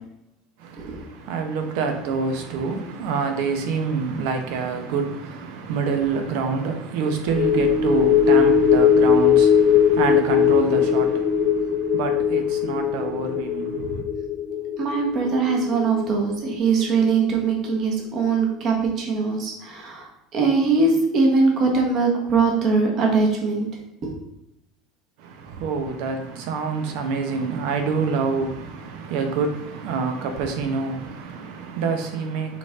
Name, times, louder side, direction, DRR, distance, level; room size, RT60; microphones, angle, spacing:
voice 1, 0.6-14.1 25.2-32.6, right 5 dB, 65° right, 1.0 m, -27 dB
sound 1, 7.3-17.9 18.2-18.4, left 7 dB, 45° left, 1.2 m, -20 dB
voice 2, 14.8-23.7 24.0-24.1, right 4 dB, 35° right, 1.3 m, -21 dB
5.9 x 4.2 x 3.7 m
cardioid pair, 165°, 0 cm